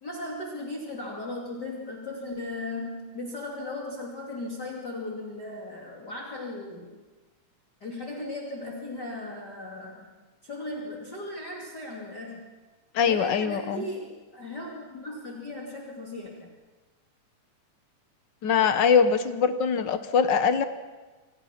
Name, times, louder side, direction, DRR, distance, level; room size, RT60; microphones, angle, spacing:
voice 1, 0.0-7.0 7.8-10.1 10.4-12.5 13.0-16.5, left 2 dB, 35° left, -1 dB, 3.0 m, -37 dB
voice 2, 12.9-13.8 18.4-20.6, left 6 dB, 70° left, 10 dB, 1.0 m, -22 dB
28.5 x 26.0 x 5.9 m, 1.3 s
omnidirectional pair, 3.6 m